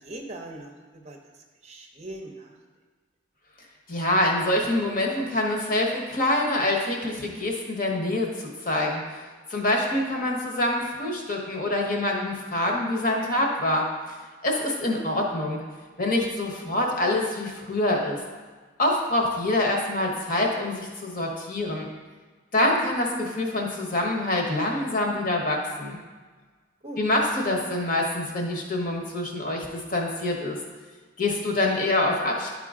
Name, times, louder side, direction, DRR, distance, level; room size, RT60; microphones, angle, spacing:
voice 1, 0.0-2.6 14.8-15.0 26.8-27.0, right 1 dB, 35° right, 3 dB, 0.6 m, -41 dB
voice 2, 3.9-9.0 9.5-13.9 14.4-15.6 16.0-18.2 18.8-21.9 22.5-26.0 27.0-30.6 31.2-32.5, left 1 dB, 45° left, 0 dB, 1.1 m, -25 dB
11.0 x 3.8 x 3.7 m, 1.4 s
head